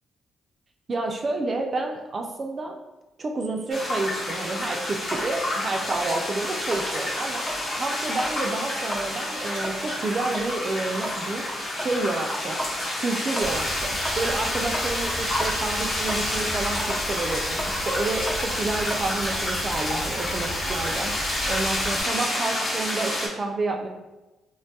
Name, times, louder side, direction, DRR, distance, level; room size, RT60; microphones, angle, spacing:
voice 1, 0.9-2.8 3.2-7.5 7.7-11.5 11.8-12.6 13.0-21.2 21.5-23.9, right 3 dB, 40° right, 2 dB, 0.3 m, -29 dB
sound 1, 3.7-23.3, left 1 dB, 45° left, 1.0 m, -29 dB
sound 2, 5.1-7.7 8.1-8.4 8.7-15.1 15.4-20.2, equal, 20° left, 0.5 m, -37 dB
sound 3, 13.4-22.0, equal, 5° right, 0.8 m, -36 dB
3.1 x 2.2 x 2.7 m, 1.1 s
cardioid pair, 90°, 0 cm